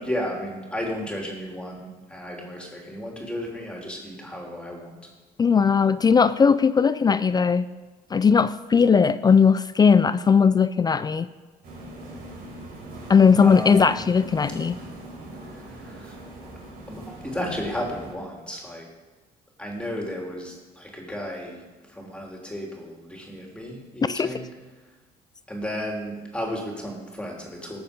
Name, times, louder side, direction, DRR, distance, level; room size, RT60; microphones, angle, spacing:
voice 1, 0.0-5.0 13.4-14.0 15.8-16.1 16.9-18.9 19.6-21.6 21.9-24.5 25.5-27.8, equal, 5° left, -1 dB, 3.2 m, -33 dB
voice 2, 5.4-7.7 8.1-11.3 13.1-14.8 24.0-24.3, left 6 dB, 25° left, 14 dB, 0.4 m, -18 dB
sound 1, 11.6-18.1, right 1 dB, 65° right, 4.3 m, -41 dB
18.0 x 7.1 x 5.3 m, 1.3 s
cardioid pair, 110°, 17 cm